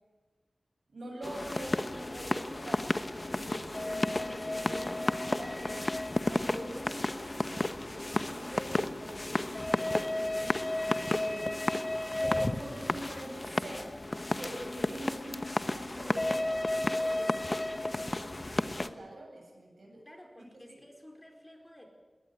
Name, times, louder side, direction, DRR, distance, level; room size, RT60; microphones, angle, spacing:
voice 1, 0.9-11.5 12.1-13.9 14.3-20.0 20.4-20.8, right 1 dB, 90° right, 0 dB, 8.0 m, -45 dB
sound 1, 1.2-18.9, left 1 dB, 30° left, 1.2 m, -32 dB
voice 2, 20.0-21.9, equal, 15° left, 3 dB, 4.7 m, -53 dB
20.0 x 19.0 x 9.4 m, 1.3 s
wide cardioid pair, 70°, 0 cm